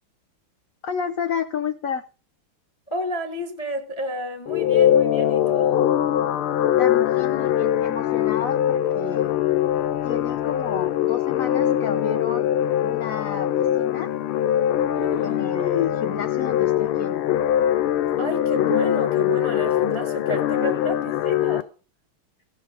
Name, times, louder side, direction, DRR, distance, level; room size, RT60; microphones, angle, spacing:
voice 1, 0.8-2.0 6.8-9.3 10.0-12.5 12.8-14.1 15.2-17.4, left 7 dB, 60° left, 0.9 m, -30 dB
voice 2, 2.9-5.8 14.9-15.5 18.2-21.7, equal, 30° left, 0.5 m, -31 dB
sound 1, 4.5-21.6, left 11 dB, 80° left, 1.6 m, -22 dB
16.0 x 6.3 x 4.9 m
omnidirectional pair, 2.4 m